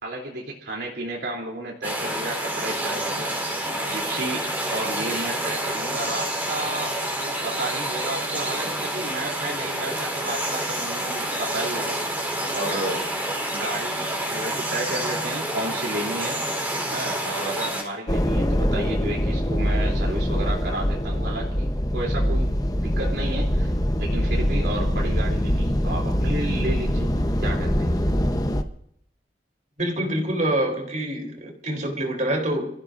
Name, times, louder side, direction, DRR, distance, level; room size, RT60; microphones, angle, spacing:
voice 1, 0.0-3.3 3.8-13.1 13.5-16.5 16.9-27.1 27.4-27.9, right 2 dB, 70° right, -2 dB, 3.3 m, -32 dB
sound 1, 1.8-17.8, right 1 dB, 10° right, 3.9 m, -28 dB
sound 2, 18.1-28.6, equal, 20° left, 1.0 m, -23 dB
voice 2, 29.8-32.7, right 1 dB, 45° right, 2 dB, 3.7 m, -26 dB
28.0 x 15.0 x 2.6 m, 0.71 s
head